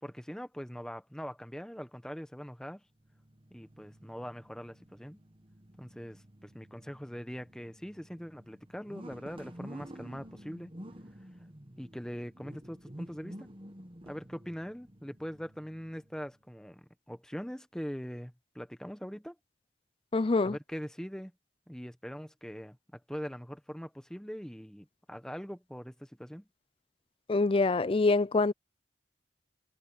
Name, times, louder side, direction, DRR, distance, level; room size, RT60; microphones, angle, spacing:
voice 1, 0.0-2.8 3.5-5.2 5.8-10.7 11.8-13.5 14.0-19.4 20.4-21.3 21.7-26.5, equal, 5° left, 1.2 m, -42 dB
sound 1, 3.0-16.3, equal, 30° right, 1.5 m, -51 dB
voice 2, 20.1-20.6 27.3-28.5, left 3 dB, 30° left, 0.4 m, -25 dB
head